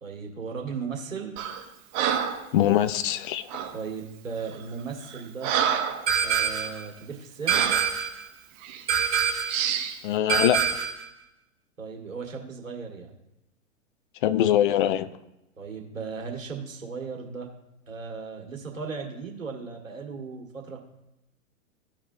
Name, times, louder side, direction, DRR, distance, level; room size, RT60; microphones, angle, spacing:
voice 1, 0.0-1.4 3.7-5.5 6.2-7.7 10.3-10.4 11.8-13.1 15.6-17.5 17.9-20.8, right 5 dB, 80° right, 1 dB, 1.8 m, -36 dB
Breathing, 1.4-1.6 1.9-2.5 3.5-3.8 4.4-4.6 5.0-6.1 6.5-6.7 7.5-7.9 8.6-8.8 9.5-10.0, right 8 dB, 35° right, 1.1 m, -28 dB
voice 2, 2.5-3.5 10.0-10.6 14.2-15.1, left 11 dB, 40° left, 14 dB, 0.5 m, -22 dB
sound 1, 6.1-6.8 7.5-8.2 8.9-9.6 10.3-11.0, right 7 dB, 60° right, 1.4 m, -25 dB
14.5 x 4.9 x 2.6 m, 0.92 s
figure-of-eight pair, 110°, 39 cm